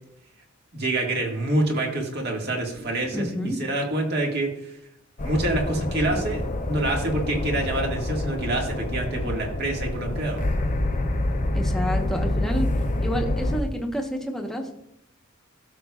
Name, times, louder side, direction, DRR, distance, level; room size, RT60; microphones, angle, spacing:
voice 1, 0.7-3.3 3.6-4.7 5.2-10.4, right 1 dB, 50° right, 0 dB, 1.8 m, -26 dB
voice 2, 3.1-3.6 11.5-12.7 13.0-14.7, equal, ahead, 1 dB, 1.1 m, -29 dB
sound 1, 5.2-13.6, left 1 dB, 35° left, 0.7 m, -27 dB
13.0 x 6.5 x 2.4 m, 0.81 s
head